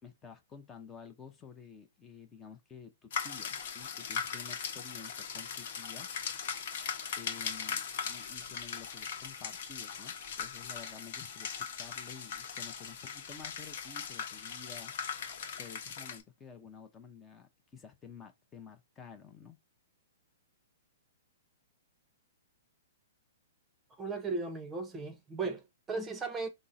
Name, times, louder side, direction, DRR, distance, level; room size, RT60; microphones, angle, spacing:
voice 1, 0.0-6.1 7.2-14.9 15.5-19.6, left 6 dB, 20° left, 0.7 m, -51 dB
sound 1, 3.1-16.2, left 7 dB, 55° left, 0.9 m, -39 dB
voice 2, 24.0-26.5, right 4 dB, 15° right, 0.7 m, -36 dB
3.6 x 2.0 x 4.1 m
hypercardioid pair, 135°, 0 cm